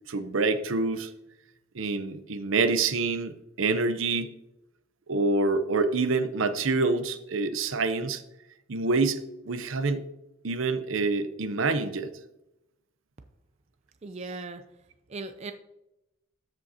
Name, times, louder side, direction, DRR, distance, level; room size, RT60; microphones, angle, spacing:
voice 1, 0.1-1.1 1.7-4.4 5.1-8.2 8.7-9.2 9.5-10.1 10.4-12.1, right 3 dB, 75° right, 11 dB, 0.6 m, -26 dB
voice 2, 14.0-14.6 15.1-15.5, right 3 dB, 35° right, 8 dB, 0.4 m, -37 dB
13.0 x 5.3 x 2.7 m, 0.88 s
head